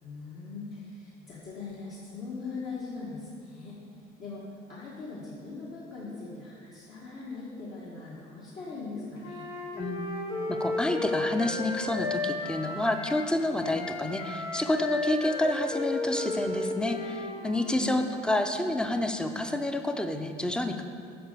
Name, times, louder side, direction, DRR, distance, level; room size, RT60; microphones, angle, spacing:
voice 1, 0.0-3.8 4.2-9.4 17.6-17.9, left 3 dB, 55° left, -7 dB, 1.6 m, -40 dB
Wind instrument woodwind instrument, 9.2-13.3 13.6-17.8, left 2 dB, 80° left, 1.4 m, -34 dB
voice 2, 9.8-10.1 10.5-20.8, left 1 dB, 5° left, 7 dB, 0.6 m, -29 dB
7.8 x 5.3 x 6.7 m, 2.4 s
cardioid pair, 110°, 17 cm